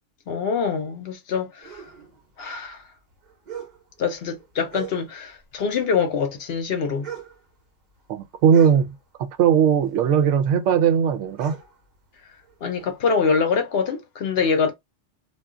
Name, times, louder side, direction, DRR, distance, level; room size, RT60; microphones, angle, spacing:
voice 1, 0.3-1.8 2.4-2.8 4.0-7.1 12.6-14.7, left 5 dB, 60° left, 0.8 m, -24 dB
sound 1, 1.6-5.4 5.7-9.5 9.8-13.0, right 8 dB, 40° right, 0.9 m, -42 dB
voice 2, 8.1-11.6, right 8 dB, 80° right, 0.9 m, -19 dB
2.4 x 2.3 x 3.6 m
omnidirectional pair, 1.3 m